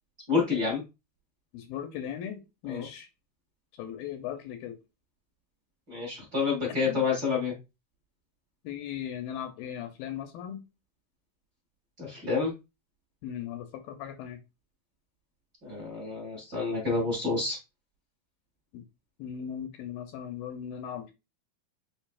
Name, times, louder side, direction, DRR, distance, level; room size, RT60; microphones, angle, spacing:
voice 1, 0.3-0.8 2.7-2.9 5.9-7.5 12.0-12.5 15.6-17.6, left 4 dB, 35° right, -3 dB, 1.6 m, -28 dB
voice 2, 1.5-3.1 3.8-4.8 6.7-7.1 8.6-10.6 13.2-14.4 18.7-18.8 19.2-21.1, left 9 dB, 80° left, 6 dB, 2.4 m, -38 dB
6.7 x 3.2 x 2.4 m, 0.25 s
omnidirectional pair, 4.3 m